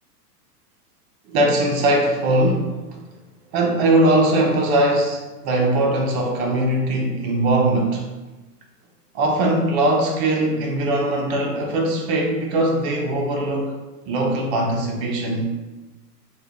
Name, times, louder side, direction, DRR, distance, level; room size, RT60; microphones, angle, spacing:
voice 1, 1.3-2.8 3.5-8.1 9.1-13.7 14.1-15.5, right 1 dB, 40° right, 1 dB, 0.7 m, -20 dB
3.3 x 2.4 x 3.5 m, 1.2 s
hypercardioid pair, 115°, 49 cm